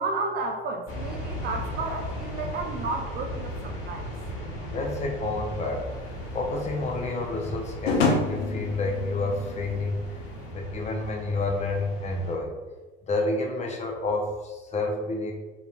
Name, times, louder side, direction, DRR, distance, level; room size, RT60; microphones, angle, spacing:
voice 1, 0.0-4.1, right 3 dB, 35° right, 2 dB, 0.4 m, -32 dB
sound 1, 0.9-12.3, equal, 50° left, 1.0 m, -37 dB
voice 2, 4.7-5.8 6.3-10.0 10.5-12.5 13.1-15.3, left 2 dB, 25° left, 1 dB, 0.5 m, -29 dB
sound 2, 5.8-10.5, left 3 dB, 85° left, 0.5 m, -30 dB
3.8 x 2.8 x 2.2 m, 1.2 s
figure-of-eight pair, 75°, 30 cm